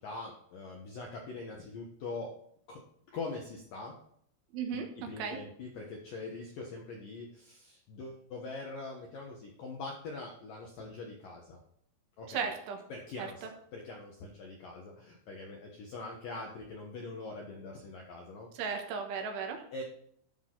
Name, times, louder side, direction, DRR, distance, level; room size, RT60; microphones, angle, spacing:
voice 1, 0.0-2.3 2.7-2.8 3.1-3.9 4.7-11.6 12.2-12.5 12.9-18.5 19.7-19.8, left 3 dB, 70° left, 0 dB, 2.1 m, -43 dB
voice 2, 4.5-5.4 12.3-12.8 13.2-13.5 18.5-19.6, right 6 dB, 75° right, 4 dB, 3.6 m, -36 dB
12.5 x 6.4 x 3.9 m, 0.66 s
omnidirectional pair, 5.9 m